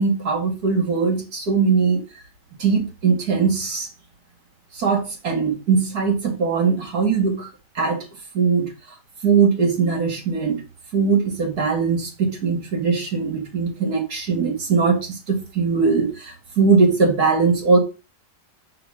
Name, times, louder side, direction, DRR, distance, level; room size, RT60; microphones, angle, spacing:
voice 1, 0.0-2.0 2.6-3.9 4.7-7.5 7.8-8.0 8.3-8.7 9.2-10.6 10.9-17.8, right 5 dB, 60° right, 2.6 m, -20 dB
6.3 x 4.5 x 6.3 m
omnidirectional pair, 1.8 m